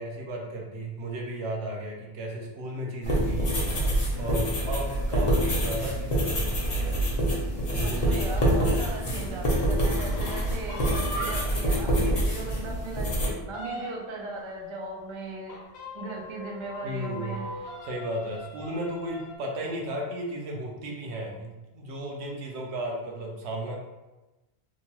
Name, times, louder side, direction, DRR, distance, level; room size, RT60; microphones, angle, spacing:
voice 1, 0.0-3.6 4.2-7.0 7.7-8.0 16.8-17.5 17.8-23.8, right 1 dB, 80° right, 0 dB, 0.9 m, -34 dB
sound 1, 3.0-13.3, right 1 dB, 40° left, 0.7 m, -26 dB
voice 2, 7.7-15.6 15.9-17.5, right 3 dB, 55° right, -1 dB, 0.3 m, -38 dB
sound 2, 9.9-11.7 12.1-12.2 12.5-12.6 13.0-14.2 15.5-19.4, equal, 75° left, 0.9 m, -39 dB
2.9 x 2.2 x 2.9 m, 1.1 s
omnidirectional pair, 1.1 m